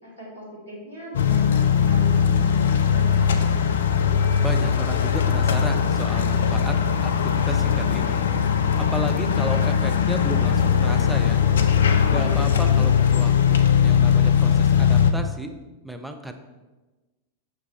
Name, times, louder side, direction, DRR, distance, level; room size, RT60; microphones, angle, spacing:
voice 1, 0.0-3.3 11.9-12.8, right 1 dB, 85° left, -5 dB, 2.2 m, -40 dB
sound 1, 1.1-15.1, left 7 dB, 65° left, 0.4 m, -20 dB
voice 2, 4.4-6.8 7.0-8.2 8.8-11.4 12.1-15.5 15.8-16.3, right 1 dB, 5° right, 6 dB, 0.6 m, -32 dB
6.1 x 5.9 x 3.2 m, 1.2 s
figure-of-eight pair, 90°, 0 cm